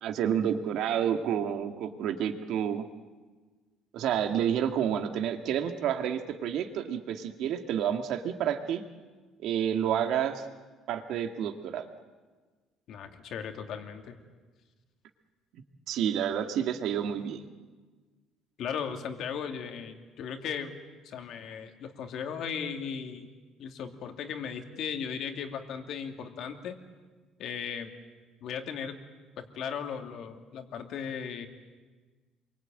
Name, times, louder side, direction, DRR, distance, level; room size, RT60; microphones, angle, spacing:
voice 1, 0.0-2.9 3.9-8.8 9.4-10.5 10.9-11.9 15.9-17.5, right 9 dB, 65° right, 6 dB, 2.1 m, -29 dB
voice 2, 12.9-14.2 18.6-20.7 21.0-23.3 23.6-26.8 27.4-27.9 28.4-29.0 29.4-31.5, left 7 dB, 55° left, 5 dB, 2.7 m, -37 dB
27.5 x 23.5 x 9.2 m, 1.4 s
cardioid pair, 145°, 0 cm